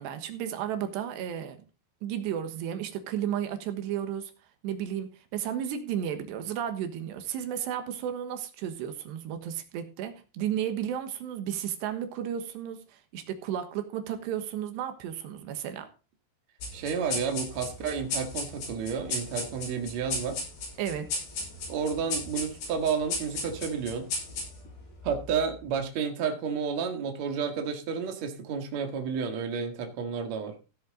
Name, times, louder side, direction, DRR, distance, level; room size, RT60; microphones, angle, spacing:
voice 1, 0.0-1.6 2.0-4.3 4.6-15.9 20.8-21.1, right 9 dB, 90° right, 3.5 m, -33 dB
sound 1, 16.6-25.5, left 3 dB, 90° left, 7.8 m, -36 dB
voice 2, 16.7-20.4 21.7-24.1 25.0-30.6, right 6 dB, 50° right, 2.7 m, -31 dB
16.0 x 7.8 x 3.8 m
omnidirectional pair, 4.8 m